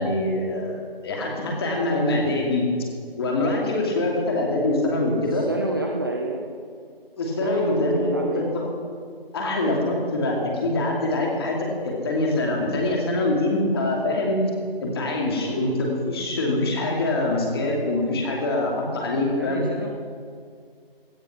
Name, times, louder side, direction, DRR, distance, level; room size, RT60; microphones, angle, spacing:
voice 1, 0.0-2.6 3.2-5.5 7.2-8.7 9.3-14.4 14.8-19.6, left 2 dB, 25° left, -1 dB, 2.7 m, -24 dB
voice 2, 5.3-6.5 7.4-8.6 15.3-15.7 19.4-19.9, right 2 dB, 20° right, 1 dB, 0.7 m, -30 dB
17.0 x 12.5 x 6.0 m, 2.2 s
figure-of-eight pair, 165°, 30 cm